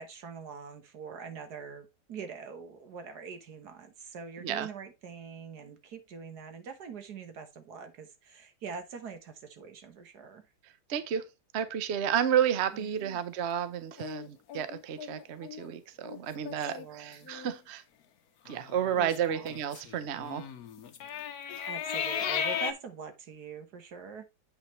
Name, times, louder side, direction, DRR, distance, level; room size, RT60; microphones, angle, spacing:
voice 1, 0.0-10.5 12.7-13.2 16.6-17.3 19.0-19.5 21.7-24.2, right 6 dB, 70° right, 1.7 m, -44 dB
voice 2, 10.9-11.3 11.5-17.8 18.4-20.5, right 9 dB, 55° right, 0.8 m, -31 dB
sound 1, 14.0-15.7 16.0-16.2 16.4-16.9 17.3-17.6 18.5-22.7, left 8 dB, 65° left, 1.2 m, -36 dB
8.2 x 5.6 x 3.1 m
omnidirectional pair, 1.8 m